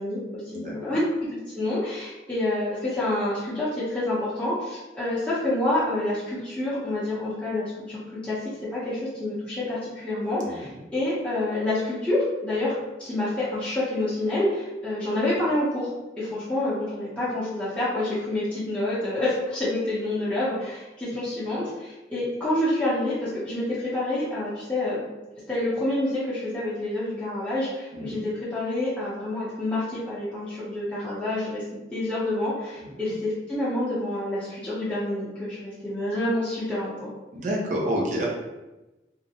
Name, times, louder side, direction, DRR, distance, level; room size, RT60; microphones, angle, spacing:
voice 1, 0.0-8.4 8.7-12.7 13.0-15.9 16.2-25.1 25.5-31.6 31.9-37.1, left 1 dB, 5° left, -12 dB, 0.6 m, -28 dB
voice 2, 37.3-38.3, equal, 45° right, -3 dB, 0.5 m, -29 dB
2.4 x 2.0 x 2.7 m, 1.1 s
head